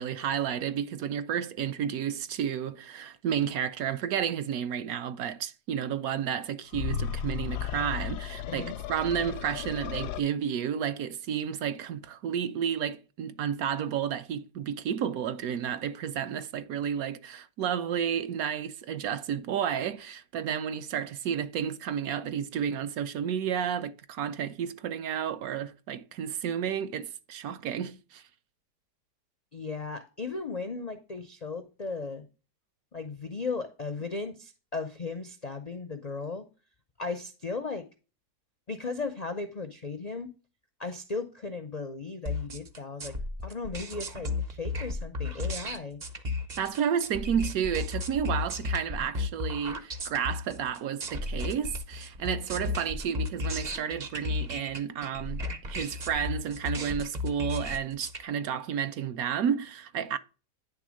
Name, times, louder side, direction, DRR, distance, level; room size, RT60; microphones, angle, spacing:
voice 1, 0.0-28.2 46.6-60.2, right 8 dB, 70° right, 1.0 m, -31 dB
sound 1, 6.7-10.2, left 9 dB, 80° left, 1.1 m, -34 dB
voice 2, 29.5-32.3 32.9-36.5 37.0-37.9 38.7-40.3 40.8-43.2 43.4-46.0, left 4 dB, 60° left, 0.4 m, -36 dB
sound 2, 42.3-58.2, left 3 dB, 40° right, 0.7 m, -34 dB
10.0 x 3.4 x 6.2 m
omnidirectional pair, 1.8 m